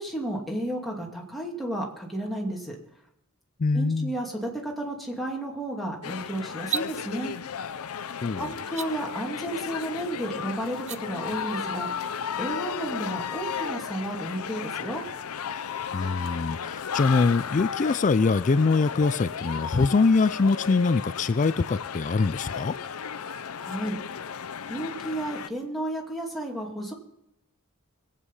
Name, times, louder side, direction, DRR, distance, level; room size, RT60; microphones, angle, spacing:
voice 1, 0.0-2.8 3.7-7.3 8.4-11.9 12.4-15.0 23.6-24.0 24.7-26.9, right 1 dB, ahead, -2 dB, 2.5 m, -32 dB
voice 2, 3.6-4.1 8.2-8.5 15.9-22.7, left 4 dB, 35° left, 15 dB, 0.4 m, -23 dB
sound 1, 6.0-25.5, left 7 dB, 85° left, 0.6 m, -34 dB
sound 2, 6.5-6.9 8.6-8.9 10.7-11.0, right 9 dB, 30° right, 0.4 m, -31 dB
21.0 x 8.4 x 5.5 m, 0.86 s
head